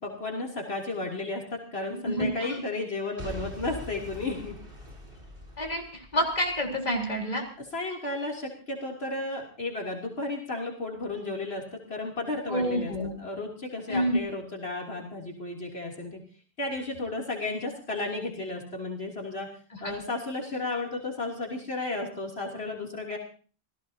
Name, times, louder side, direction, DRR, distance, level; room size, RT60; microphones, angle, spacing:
voice 1, 0.0-4.6 7.6-16.2 16.6-19.5 19.8-23.2, left 2 dB, 75° left, -1 dB, 3.4 m, -33 dB
voice 2, 2.0-2.6 5.6-7.4 12.5-13.1 13.9-14.2 19.8-20.0, equal, 40° left, 0 dB, 4.0 m, -28 dB
Boom / Shatter / Crushing, 3.2-7.2 7.7-7.8, left 1 dB, 60° right, 4.2 m, -43 dB
28.0 x 17.0 x 2.8 m, 0.41 s
omnidirectional pair, 1.1 m